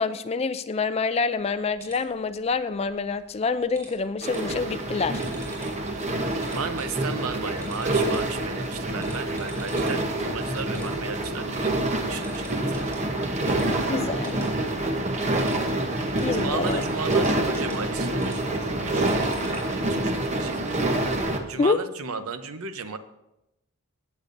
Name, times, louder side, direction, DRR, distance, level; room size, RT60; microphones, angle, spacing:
voice 1, 0.0-5.2 13.9-14.4 16.2-16.8 21.6-21.8, left 4 dB, 30° left, 12 dB, 0.3 m, -26 dB
sound 1, 1.3-19.8, right 1 dB, 15° right, 4.5 m, -50 dB
sound 2, 4.2-21.4, right 1 dB, 30° right, 0.9 m, -27 dB
voice 2, 6.5-13.0 16.2-19.2 19.9-20.9 21.4-23.0, right 4 dB, 75° right, 10 dB, 0.7 m, -35 dB
16.5 x 8.3 x 2.6 m, 0.89 s
head